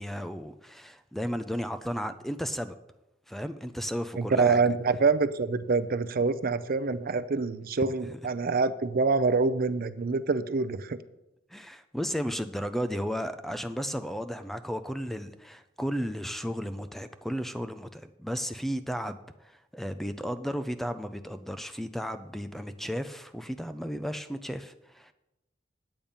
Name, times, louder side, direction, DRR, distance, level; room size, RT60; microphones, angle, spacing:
voice 1, 0.0-2.7 3.3-4.6 8.0-8.1 11.5-25.1, equal, ahead, 10 dB, 0.4 m, -34 dB
voice 2, 4.2-11.0, right 4 dB, 50° right, 12 dB, 0.5 m, -26 dB
8.8 x 8.7 x 5.3 m, 0.92 s
head